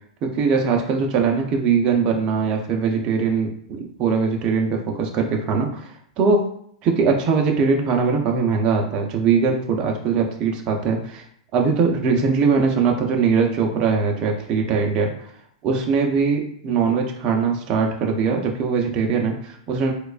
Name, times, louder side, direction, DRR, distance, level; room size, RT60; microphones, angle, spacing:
voice 1, 0.2-5.9 6.2-6.4 6.8-11.2 11.5-15.1 15.6-19.9, right 5 dB, 30° right, 2 dB, 0.6 m, -21 dB
4.5 x 2.3 x 2.4 m, 0.67 s
supercardioid pair, 155°, 4 cm